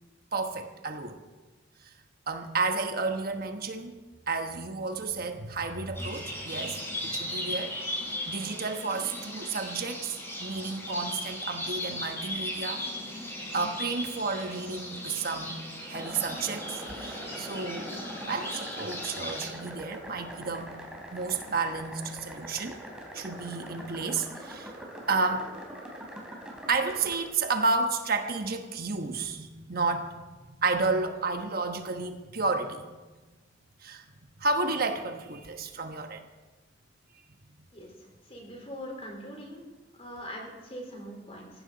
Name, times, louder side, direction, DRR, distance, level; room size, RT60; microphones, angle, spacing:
voice 1, 0.3-1.2 1.8-1.9 2.3-3.9 4.3-7.8 8.3-12.8 13.2-15.6 15.9-18.0 18.2-20.7 21.1-22.8 23.1-24.7 25.1-25.5 26.7-30.2 30.6-33.0 33.8-34.0 34.4-36.2, right 3 dB, 55° right, 6 dB, 1.2 m, -31 dB
sound 1, 5.9-19.5, left 1 dB, 15° left, 5.3 m, -37 dB
sound 2, 15.9-27.2, right 1 dB, 5° right, 3.5 m, -43 dB
voice 2, 38.3-39.7 40.0-41.5, equal, 35° left, 0 dB, 4.0 m, -41 dB
18.5 x 15.5 x 4.0 m, 1.2 s
head